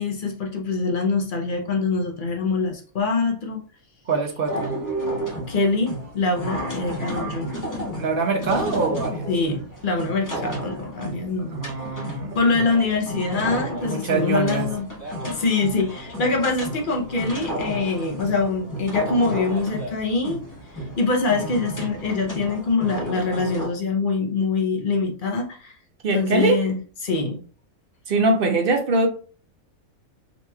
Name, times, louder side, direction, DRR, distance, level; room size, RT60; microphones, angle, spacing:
voice 1, 0.0-3.6 5.5-7.5 9.3-11.6 12.3-14.9 15.2-20.4 20.7-25.8 26.1-26.8 27.0-27.4, left 3 dB, 50° left, 2 dB, 0.6 m, -24 dB
voice 2, 4.1-4.8 7.9-9.3 11.5-12.6 13.8-14.7 26.0-26.6 28.1-29.1, right 3 dB, 60° right, 4 dB, 0.6 m, -23 dB
sound 1, 4.4-23.7, right 1 dB, 15° left, 0.8 m, -32 dB
4.0 x 2.9 x 2.2 m, 0.39 s
omnidirectional pair, 1.5 m